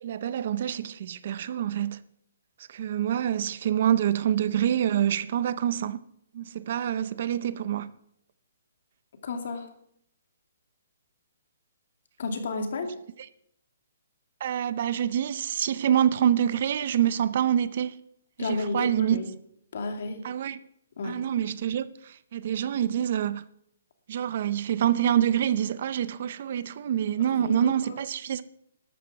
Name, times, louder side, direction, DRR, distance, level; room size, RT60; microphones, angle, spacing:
voice 1, 0.0-2.0 2.7-6.0 6.3-7.9 14.4-17.9 18.4-19.2 20.2-20.6 21.0-23.4 24.1-28.4, right 10 dB, 45° right, 0.6 m, -26 dB
voice 2, 9.2-9.7 12.2-12.9 18.4-19.3 19.7-20.3 21.0-21.2 27.4-28.0, left 3 dB, 55° left, 2.5 m, -32 dB
12.5 x 7.6 x 7.5 m
hypercardioid pair, 165°, 0 cm